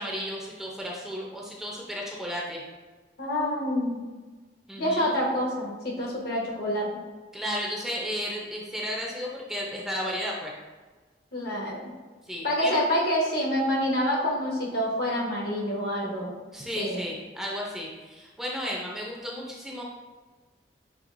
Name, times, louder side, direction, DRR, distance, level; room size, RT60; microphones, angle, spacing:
voice 1, 0.0-2.6 4.7-5.2 7.3-10.5 12.3-12.8 16.5-19.8, equal, ahead, -3 dB, 0.6 m, -33 dB
voice 2, 3.2-4.0 4.8-6.9 11.3-11.8 12.4-16.3 16.8-17.0, equal, 60° left, -2 dB, 1.2 m, -27 dB
6.0 x 3.3 x 2.5 m, 1.3 s
head